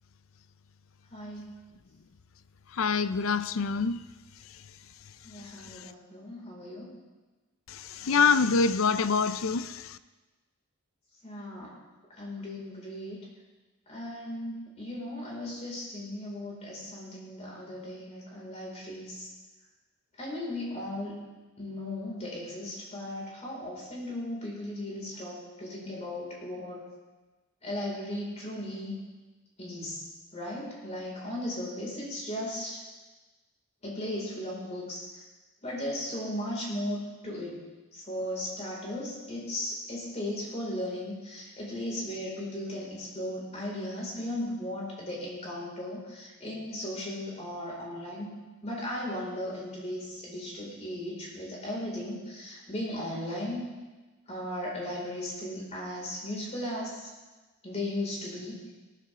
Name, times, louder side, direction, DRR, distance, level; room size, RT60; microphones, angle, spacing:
voice 1, 1.1-1.5 5.2-6.9 11.2-11.7 12.2-13.2 13.9-19.3 20.2-21.2 21.6-26.8 27.6-29.0 29.6-30.0 30.3-32.8 33.8-35.1 35.6-37.6 37.9-48.3 48.6-53.6 54.3-57.1 57.6-58.6, left 1 dB, 35° left, 5.1 m, -36 dB
voice 2, 2.8-4.0 8.0-9.8, left 5 dB, 85° left, 0.5 m, -25 dB
18.0 x 12.5 x 3.7 m
head